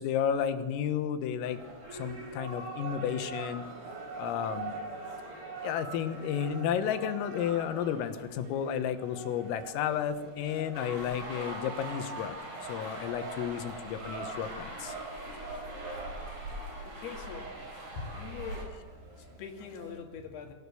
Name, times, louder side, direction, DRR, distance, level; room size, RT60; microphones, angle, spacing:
voice 1, 0.0-1.6 1.9-3.6 4.2-4.8 5.6-12.4 12.7-14.9, left 9 dB, 90° left, 9 dB, 4.0 m, -32 dB
sound 1, 1.4-20.0, right 3 dB, 55° right, 7.1 m, -44 dB
sound 2, 10.7-18.7, right 1 dB, 35° right, 5.0 m, -42 dB
voice 2, 16.9-17.5 18.0-18.8 19.2-20.5, left 5 dB, 60° left, 4 dB, 3.7 m, -42 dB
23.5 x 17.0 x 7.0 m, 1.3 s
omnidirectional pair, 5.8 m